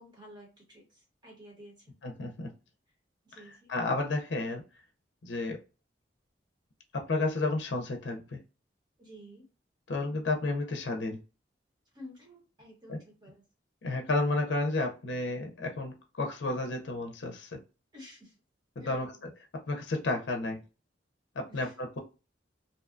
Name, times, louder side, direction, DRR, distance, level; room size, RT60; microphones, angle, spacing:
voice 1, 0.0-2.0 3.2-3.7 9.0-9.4 11.9-13.4 17.9-18.3 18.8-19.2 21.5-21.7, equal, 25° right, -1 dB, 1.0 m, -51 dB
voice 2, 2.0-2.5 3.7-4.6 5.2-5.6 6.9-8.4 9.9-11.2 12.9-13.0 13.8-17.6 18.9-19.1 19.7-20.6 21.4-22.0, left 2 dB, 75° left, 3 dB, 0.5 m, -31 dB
2.7 x 2.2 x 2.4 m, 0.32 s
head